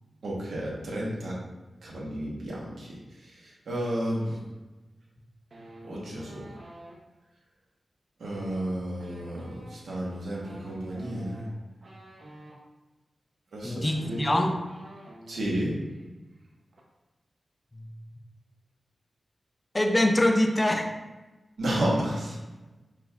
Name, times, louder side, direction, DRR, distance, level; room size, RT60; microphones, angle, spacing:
voice 1, 0.2-1.4 1.8-4.4 5.8-6.4 8.2-11.5 13.5-14.5 15.3-15.8 21.6-22.4, right 1 dB, 85° right, -4 dB, 1.0 m, -32 dB
sound 1, 5.5-7.0 8.2-12.6 13.5-13.6 13.9-15.5 15.8-16.1 16.3-16.8, right 1 dB, 50° right, 0.6 m, -49 dB
voice 2, 13.6-14.6 17.7-17.9 19.7-20.9, left 1 dB, 20° left, 5 dB, 0.3 m, -24 dB
5.9 x 2.3 x 2.3 m, 1.2 s
wide cardioid pair, 150°, 0 cm